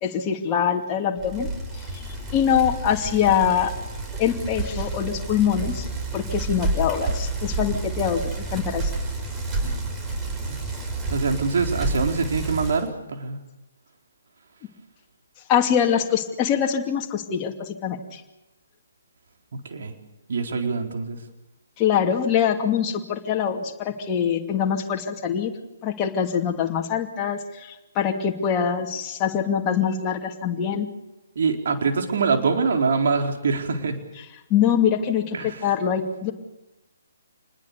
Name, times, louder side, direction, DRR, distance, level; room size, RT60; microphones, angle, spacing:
voice 1, 0.0-1.5 1.9-2.0 2.3-3.7 4.2-5.9 6.1-8.9 15.5-18.2 21.8-25.5 25.8-30.9 34.2-34.3 34.5-36.3, left 8 dB, 25° left, 1 dB, 2.6 m, -24 dB
Bicycle, 1.2-12.9, right 3 dB, 15° right, 5.7 m, -29 dB
voice 2, 11.1-13.4 19.6-19.9 20.3-21.2 31.4-34.0 35.4-35.6, right 4 dB, 55° right, 3 dB, 4.3 m, -24 dB
27.5 x 20.5 x 7.0 m, 0.99 s
figure-of-eight pair, 135°, 0 cm